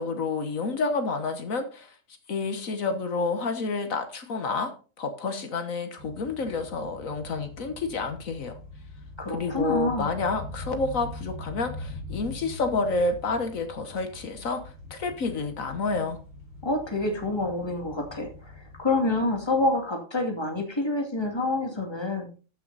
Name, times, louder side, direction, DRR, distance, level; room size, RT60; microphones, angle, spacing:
voice 1, 0.0-1.9 2.3-4.7 5.0-8.5 9.3-14.6 14.9-16.2, left 3 dB, 80° left, 7 dB, 1.7 m, -29 dB
sound 1, 6.0-19.8, left 2 dB, 50° left, 4.5 m, -43 dB
voice 2, 9.2-10.1 16.6-18.5 18.8-22.3, left 2 dB, 20° left, 2 dB, 2.4 m, -27 dB
14.5 x 6.1 x 4.1 m, 0.35 s
omnidirectional pair, 1.4 m